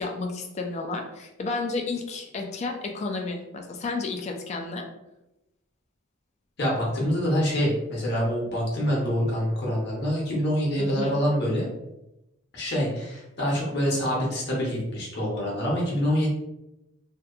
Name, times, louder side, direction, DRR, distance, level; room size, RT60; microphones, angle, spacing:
voice 1, 0.0-4.9 10.8-11.2, left 3 dB, 30° left, 2 dB, 0.3 m, -32 dB
voice 2, 6.6-11.7 12.5-16.3, equal, 55° left, -4 dB, 0.8 m, -26 dB
2.7 x 2.2 x 2.3 m, 0.92 s
head